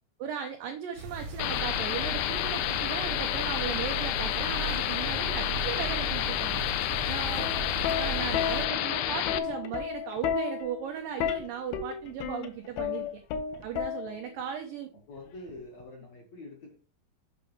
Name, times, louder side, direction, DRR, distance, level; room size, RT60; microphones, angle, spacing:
voice 1, 0.2-6.6 7.1-7.5 7.9-13.2 13.6-14.9, right 8 dB, 90° right, 5 dB, 1.9 m, -37 dB
sound 1, 1.0-8.7, right 3 dB, 70° right, 1.9 m, -37 dB
sound 2, 1.4-9.4, left 13 dB, 90° left, 2.3 m, -30 dB
Plucked string instrument, 7.2-14.4 15.5-15.8, left 8 dB, 75° left, 2.4 m, -33 dB
voice 2, 15.1-16.7, left 2 dB, 55° left, 0 dB, 2.0 m, -46 dB
8.5 x 5.9 x 3.2 m, 0.34 s
omnidirectional pair, 5.1 m